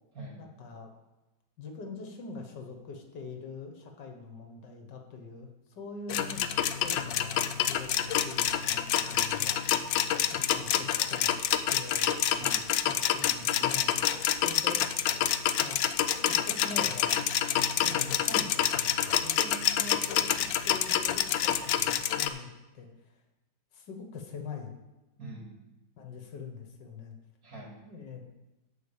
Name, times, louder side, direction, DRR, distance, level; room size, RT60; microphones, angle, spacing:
voice 1, 0.4-0.9 1.6-10.0 10.3-11.3 11.7-12.5 12.8-14.8 15.6-15.8 16.2-17.2 17.8-18.9 19.2-22.5 22.7-23.2 23.7-24.7 26.0-27.1 27.8-28.2, left 4 dB, 70° left, 4 dB, 1.8 m, -43 dB
sound 1, 6.1-22.3, left 10 dB, 85° left, 1.3 m, -27 dB
voice 2, 12.4-13.6 25.2-25.5 27.4-27.8, right 1 dB, 50° right, -2 dB, 2.8 m, -46 dB
11.5 x 4.6 x 7.2 m, 1.0 s
omnidirectional pair, 2.0 m